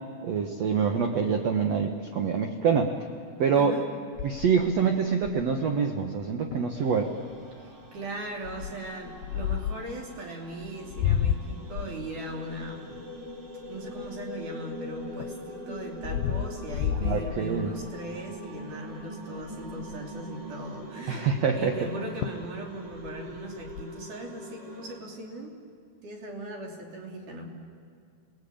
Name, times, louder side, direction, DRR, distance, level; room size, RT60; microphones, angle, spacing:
voice 1, 0.2-2.9 3.4-3.7 4.2-7.1 17.0-17.8 21.1-21.7, right 6 dB, 75° right, 4 dB, 1.5 m, -25 dB
voice 2, 3.5-3.9 7.6-13.1 13.7-25.6 26.0-27.5, right 1 dB, 50° right, 0 dB, 4.2 m, -39 dB
sound 1, 4.2-5.6 6.2-6.3 6.5-6.8 7.3-7.6 8.4-9.9 10.6-14.5 15.0-18.0 18.5-18.7 19.0-19.1 19.4-20.1 21.8-21.9 22.2-22.6 22.9-23.8, left 10 dB, 80° left, 2.8 m, -32 dB
sound 2, 6.7-25.0, equal, 30° right, 2.6 m, -43 dB
28.5 x 19.0 x 8.7 m, 2.3 s
omnidirectional pair, 4.9 m